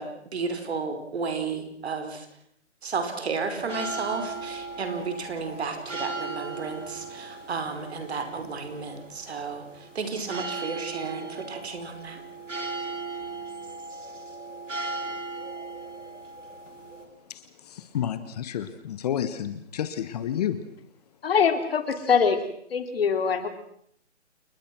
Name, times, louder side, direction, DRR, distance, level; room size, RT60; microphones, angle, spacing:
voice 1, 0.0-2.3 2.8-9.6 9.9-12.2, right 4 dB, 60° right, 7 dB, 5.1 m, -32 dB
sound 1, 3.4-17.1, right 3 dB, 85° right, 5.3 m, -37 dB
voice 2, 17.3-20.6, left 10 dB, 35° left, 12 dB, 1.5 m, -30 dB
voice 3, 21.2-22.4 22.7-23.5, left 6 dB, 55° left, 8 dB, 3.3 m, -23 dB
29.5 x 21.0 x 6.2 m, 0.66 s
hypercardioid pair, 150°, 36 cm